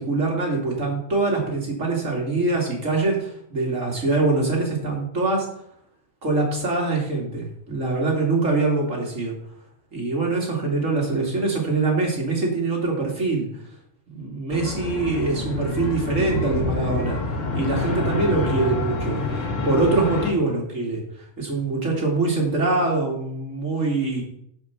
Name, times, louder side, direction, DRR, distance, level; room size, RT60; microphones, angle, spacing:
voice 1, 0.0-5.5 6.2-9.3 9.9-13.5 14.1-19.4 19.6-21.0 21.4-24.2, right 3 dB, 75° right, -1 dB, 3.1 m, -24 dB
sound 1, 14.5-20.3, left 3 dB, 70° left, 1.9 m, -27 dB
10.5 x 5.4 x 7.0 m, 0.72 s
omnidirectional pair, 1.4 m